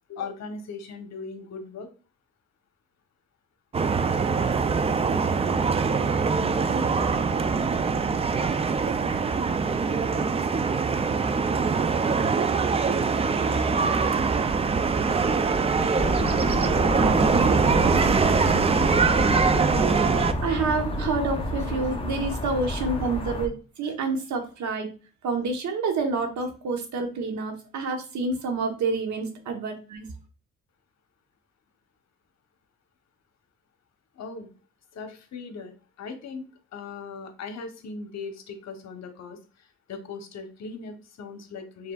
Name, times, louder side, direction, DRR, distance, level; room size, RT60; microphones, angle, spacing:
voice 1, 0.1-1.9 34.1-34.5 34.9-36.4 36.7-41.9, left 4 dB, 60° left, 6 dB, 1.0 m, -39 dB
sound 1, 3.7-20.3, right 5 dB, 20° right, 0.4 m, -23 dB
sound 2, 16.0-23.5, left 1 dB, 20° left, 0.8 m, -29 dB
voice 2, 20.4-24.9 25.2-30.1, right 3 dB, 70° right, 4 dB, 1.2 m, -28 dB
4.9 x 3.6 x 2.4 m, 0.36 s
cardioid pair, 90°, 30 cm